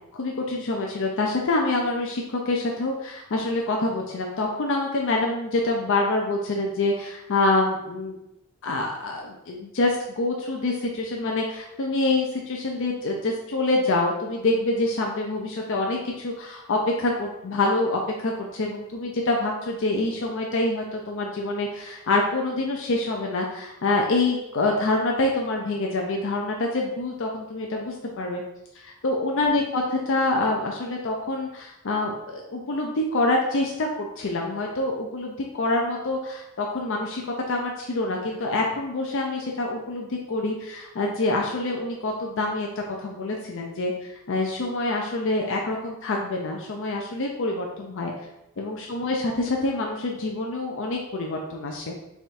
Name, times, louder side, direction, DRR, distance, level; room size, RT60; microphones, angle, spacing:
voice 1, 0.1-8.2 8.6-28.4 28.7-48.1 48.6-51.9, left 2 dB, 60° left, 0 dB, 0.5 m, -26 dB
3.5 x 3.5 x 4.2 m, 0.89 s
head